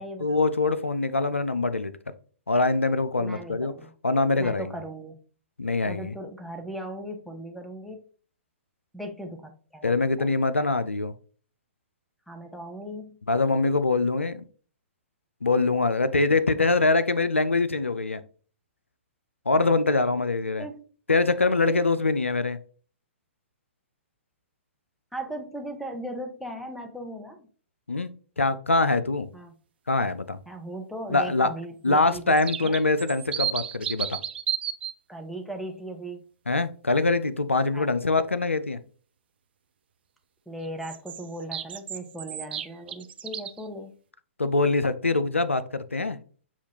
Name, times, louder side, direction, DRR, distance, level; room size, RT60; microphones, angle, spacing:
voice 1, 0.2-1.9 2.5-3.7 4.0-4.8 5.6-6.1 9.8-11.1 13.3-14.4 15.4-18.2 19.5-20.6 21.1-22.6 27.9-28.1 28.4-29.3 29.9-30.4 31.1-31.5 31.8-34.2 36.5-38.8 44.4-46.2, left 3 dB, 85° left, 13 dB, 0.4 m, -24 dB
voice 2, 3.2-3.9 4.4-5.2 5.8-8.0 8.9-10.3 12.3-13.2 20.6-20.8 21.6-21.8 25.1-27.5 29.3-29.6 30.5-32.8 35.1-36.2 37.7-38.2 40.5-43.9, right 1 dB, ahead, 4 dB, 0.6 m, -38 dB
sound 1, 32.1-34.9 40.8-43.7, right 9 dB, 55° right, 0.4 m, -33 dB
7.0 x 2.4 x 2.8 m, 0.42 s
figure-of-eight pair, 120°, 7 cm